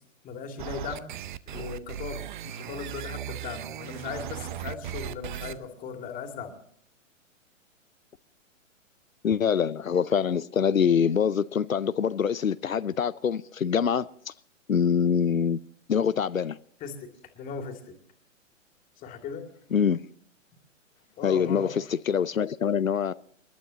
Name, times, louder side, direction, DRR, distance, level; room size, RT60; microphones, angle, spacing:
voice 1, 0.2-1.1 1.5-2.3 2.6-6.5 16.8-18.0 19.0-19.5 21.2-21.7, left 6 dB, 20° left, 2.4 m, -37 dB
sound 1, 0.6-5.5, right 11 dB, 40° right, 0.7 m, -37 dB
voice 2, 9.2-14.3 14.7-15.6 15.9-16.6 19.7-20.0 21.2-23.1, left 7 dB, 90° left, 0.6 m, -25 dB
28.5 x 12.0 x 2.8 m
figure-of-eight pair, 120°, 39 cm